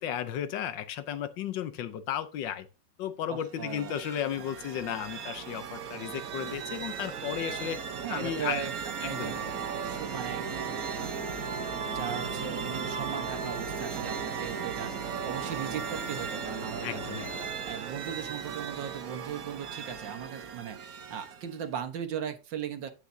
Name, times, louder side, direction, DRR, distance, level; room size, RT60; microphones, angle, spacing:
voice 1, 0.0-2.7 3.0-7.8 8.1-8.6 9.0-9.4 16.8-17.5, left 10 dB, 75° left, 1.5 m, -34 dB
voice 2, 3.3-4.0 8.0-9.4 9.8-11.3 11.9-17.3 17.7-22.9, right 8 dB, 75° right, 1.8 m, -38 dB
sound 1, 3.4-21.6, right 7 dB, 55° right, 1.4 m, -37 dB
sound 2, 9.1-17.5, left 4 dB, 25° left, 2.5 m, -44 dB
10.5 x 8.6 x 2.7 m
omnidirectional pair, 2.1 m